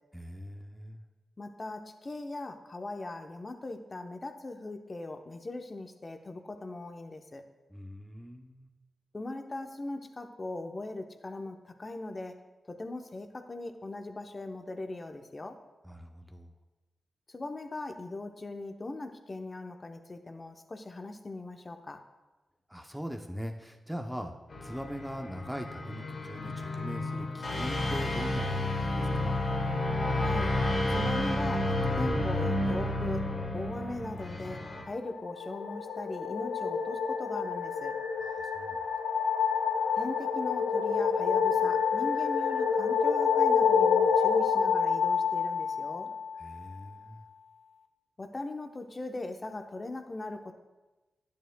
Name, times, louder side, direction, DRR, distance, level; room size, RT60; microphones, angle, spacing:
voice 1, 0.1-1.0 7.7-8.7 15.8-16.5 22.7-29.4 38.2-38.8 46.4-47.2, equal, 5° right, 3 dB, 0.7 m, -41 dB
voice 2, 1.4-7.4 9.1-12.4 12.7-15.6 17.3-22.0 30.2-30.6 30.9-38.0 40.0-46.1 48.2-50.6, left 2 dB, 35° left, 6 dB, 0.8 m, -40 dB
sound 1, 24.5-34.8, left 1 dB, 60° left, 1.6 m, -31 dB
sound 2, 35.0-46.5, left 6 dB, 85° left, 0.5 m, -28 dB
10.5 x 9.3 x 2.2 m, 1.1 s
cardioid pair, 65°, 0 cm